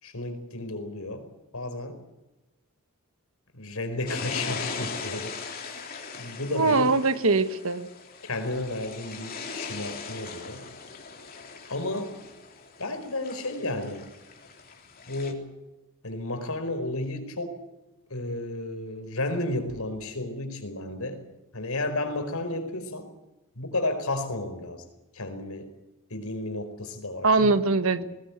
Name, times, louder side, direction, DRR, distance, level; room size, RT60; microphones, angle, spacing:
voice 1, 0.0-2.0 3.5-5.3 5.6-5.8 6.1-6.9 8.3-10.7 11.7-12.2 12.8-14.1 15.1-15.5 16.0-17.6 18.1-21.2 21.5-23.1 23.5-24.8 25.1-25.7 26.1-27.6, left 2 dB, 85° left, 7 dB, 4.7 m, -32 dB
sound 1, 4.1-15.3, left 5 dB, 45° left, 3.7 m, -39 dB
voice 2, 6.5-7.9 27.2-28.0, right 3 dB, 70° right, 11 dB, 1.6 m, -22 dB
20.5 x 20.0 x 8.4 m, 1.0 s
head